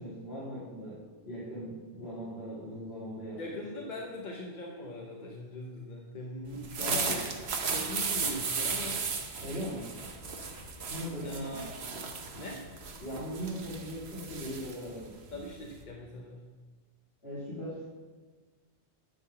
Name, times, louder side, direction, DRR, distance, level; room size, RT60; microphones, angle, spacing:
voice 1, 0.0-3.5 3.8-4.0 6.8-7.2 9.4-9.9 10.8-11.6 13.0-15.4 17.2-17.8, equal, 60° left, -8 dB, 2.2 m, -39 dB
voice 2, 3.4-7.2 7.7-9.1 11.2-11.8 12.4-12.6 15.3-16.4, left 1 dB, 45° left, -1 dB, 0.9 m, -41 dB
sound 1, 6.5-15.8, right 5 dB, 65° right, 1.1 m, -36 dB
11.0 x 3.9 x 6.8 m, 1.4 s
omnidirectional pair, 1.2 m